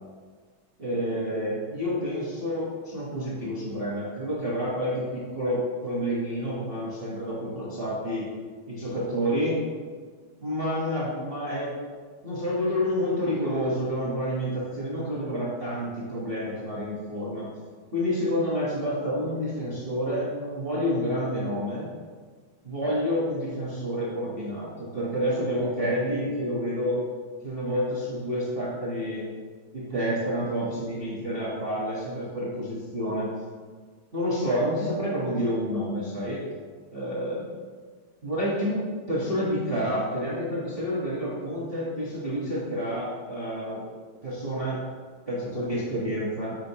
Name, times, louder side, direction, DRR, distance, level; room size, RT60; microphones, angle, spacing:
voice 1, 0.8-8.3 8.7-9.6 10.4-11.7 12.2-17.5 17.9-21.9 22.6-27.0 27.4-29.3 29.7-33.3 34.1-36.4 36.9-37.5 38.2-43.8 44.2-44.8 45.3-46.6, equal, 40° right, -8 dB, 0.8 m, -29 dB
7.6 x 5.1 x 3.1 m, 1.5 s
omnidirectional pair, 3.4 m